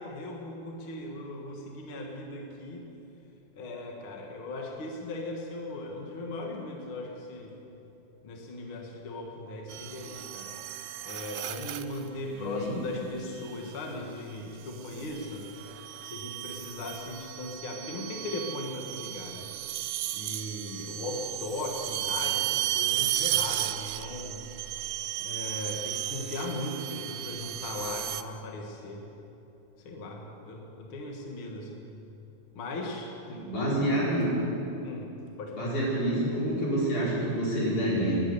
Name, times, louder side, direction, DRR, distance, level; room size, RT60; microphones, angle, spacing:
voice 1, 0.0-2.8 3.5-7.5 8.2-10.5 11.0-15.5 16.0-19.5 20.1-24.4 25.2-29.0 29.8-31.9 32.5-33.1 34.8-35.1 35.4-35.8, left 2 dB, 50° left, 1 dB, 1.9 m, -38 dB
sound 1, 9.7-12.1 13.4-13.8 14.7-28.2, right 14 dB, 90° right, 2.2 m, -34 dB
voice 2, 12.3-12.8 33.4-34.2 35.5-38.2, right 1 dB, 70° left, -7 dB, 5.7 m, -28 dB
18.0 x 10.5 x 6.9 m, 3.0 s
omnidirectional pair, 3.7 m